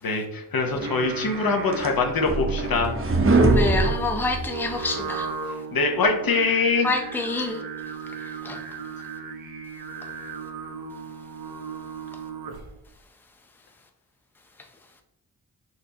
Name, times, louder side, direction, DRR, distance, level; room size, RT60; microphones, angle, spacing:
voice 1, 0.0-3.0 5.7-6.9, left 4 dB, 65° left, 1.0 m, -23 dB
Singing, 0.6-12.8, right 5 dB, 70° right, 0.7 m, -36 dB
sound 1, 1.3-4.9, right 2 dB, 35° right, 0.7 m, -23 dB
voice 2, 3.5-5.3 6.8-7.6 8.2-8.6, left 3 dB, 5° left, 0.6 m, -27 dB
4.3 x 3.9 x 2.8 m
cardioid pair, 60°, 37 cm